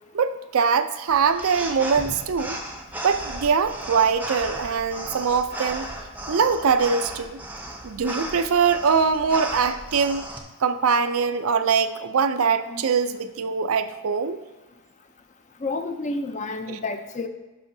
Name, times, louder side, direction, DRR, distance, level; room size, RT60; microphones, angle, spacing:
voice 1, 0.1-2.6 3.0-5.9 6.3-7.4 7.8-10.2 10.6-14.4 16.7-16.8, right 6 dB, 70° right, 10 dB, 0.5 m, -22 dB
sound 1, 1.1-10.4, right 1 dB, 10° right, 0.6 m, -35 dB
voice 2, 15.6-17.3, left 3 dB, 35° left, 7 dB, 0.5 m, -30 dB
12.0 x 5.5 x 2.7 m, 1.2 s
head